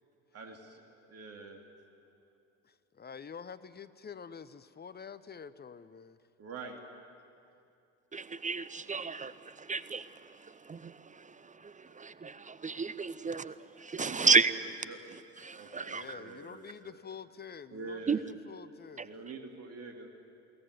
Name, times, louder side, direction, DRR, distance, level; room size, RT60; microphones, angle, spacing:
voice 1, 0.3-0.8 1.1-1.6 6.4-6.8 14.0-14.4 14.9-15.0 15.3-16.9 17.7-18.2 19.0-20.1, right 4 dB, 40° right, 2.7 m, -45 dB
voice 2, 2.6-6.2 15.9-19.1, left 6 dB, 25° left, 0.9 m, -47 dB
voice 3, 8.1-14.5 15.1-16.2 18.1-18.2 19.0-19.1, right 4 dB, 20° right, 0.7 m, -32 dB
22.0 x 18.0 x 9.6 m
hypercardioid pair, 60°, 38 cm